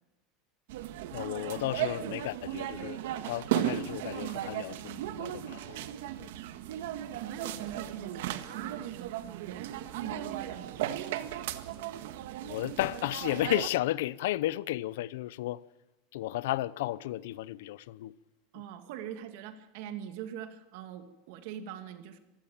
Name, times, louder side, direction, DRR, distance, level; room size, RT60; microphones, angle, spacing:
sound 1, 0.7-13.7, right 12 dB, 75° right, 1.5 m, -36 dB
voice 1, 1.1-5.9 6.2-6.3 12.4-15.6 16.1-18.1, left 15 dB, 75° left, 0.7 m, -33 dB
voice 2, 7.2-11.1 18.5-22.2, right 9 dB, 55° right, 2.1 m, -43 dB
25.5 x 16.0 x 7.2 m
supercardioid pair, 175°, 0 cm